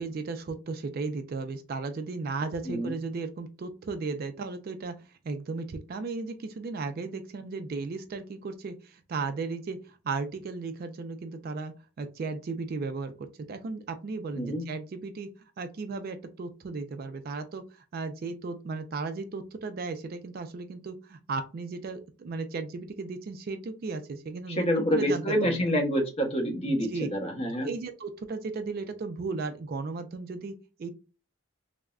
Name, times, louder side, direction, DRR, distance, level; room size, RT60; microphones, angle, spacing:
voice 1, 0.0-15.3 15.6-25.7 26.7-27.1 27.5-30.9, right 4 dB, 45° right, 8 dB, 0.3 m, -35 dB
voice 2, 24.5-27.7, equal, 30° left, 1 dB, 0.7 m, -27 dB
3.4 x 2.0 x 2.3 m, 0.32 s
head